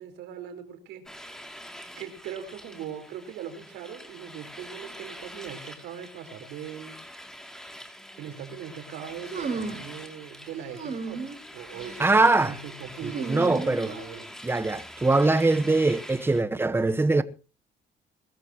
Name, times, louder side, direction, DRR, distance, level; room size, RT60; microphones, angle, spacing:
voice 1, 0.0-1.4 1.7-7.0 8.2-11.2 11.5-14.3, right 8 dB, 90° right, 4.5 m, -40 dB
sound 1, 1.1-16.4, equal, 5° left, 2.8 m, -45 dB
sound 2, 9.3-9.9 10.7-11.4 11.8-12.2 13.0-14.2, right 4 dB, 50° right, 6.4 m, -34 dB
voice 2, 12.0-12.6 13.3-13.9 14.4-17.2, right 3 dB, 15° right, 1.3 m, -22 dB
22.0 x 14.0 x 3.1 m
cardioid pair, 110°, 17 cm